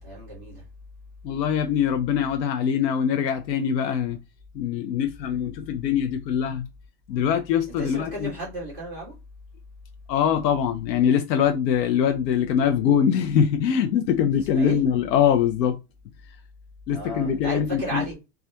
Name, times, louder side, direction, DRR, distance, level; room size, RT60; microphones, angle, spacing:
voice 1, 0.0-0.6 7.8-9.1 14.4-14.8 16.9-18.1, right 1 dB, 10° left, 0.4 m, -34 dB
voice 2, 1.2-4.2 4.5-6.7 7.1-8.3 10.1-15.8 16.9-18.1, left 8 dB, 85° left, 0.6 m, -23 dB
2.3 x 2.2 x 2.7 m
supercardioid pair, 170°, 49 cm